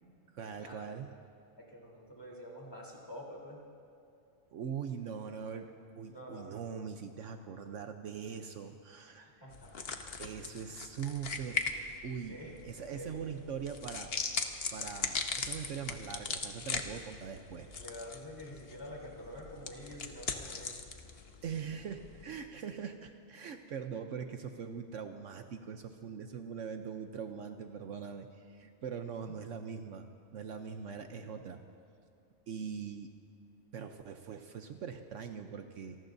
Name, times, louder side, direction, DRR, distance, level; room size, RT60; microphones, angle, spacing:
voice 1, 0.3-1.1 4.5-9.3 10.2-11.6 12.0-12.4 12.6-14.1 14.7-17.7 21.4-30.1 30.3-31.6 32.5-33.1 33.7-36.0, right 7 dB, 70° right, 6 dB, 1.1 m, -42 dB
voice 2, 1.6-3.6 6.1-6.5 9.2-9.9 12.3-12.5 12.9-13.2 17.8-20.9 29.3-29.4, equal, 15° left, -3 dB, 3.5 m, -47 dB
sound 1, 9.5-22.4, left 5 dB, 50° left, 1.1 m, -40 dB
28.0 x 19.0 x 2.7 m, 2.7 s
omnidirectional pair, 1.4 m